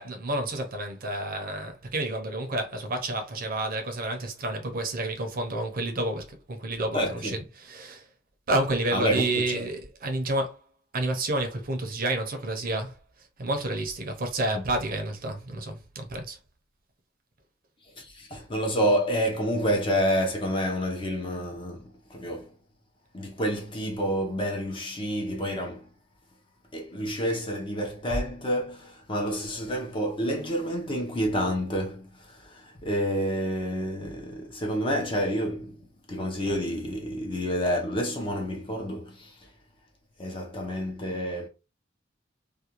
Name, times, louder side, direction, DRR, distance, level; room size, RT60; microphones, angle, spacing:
voice 1, 0.0-8.1 8.5-10.6 10.9-13.0 13.4-16.4, right 1 dB, 45° right, 0.6 m, -30 dB
voice 2, 6.9-7.4 8.9-9.7 14.5-14.6 18.0-22.5 23.1-25.9 26.7-35.8 36.1-39.5 40.2-41.5, equal, 25° left, 0.6 m, -29 dB
2.4 x 2.2 x 2.9 m
head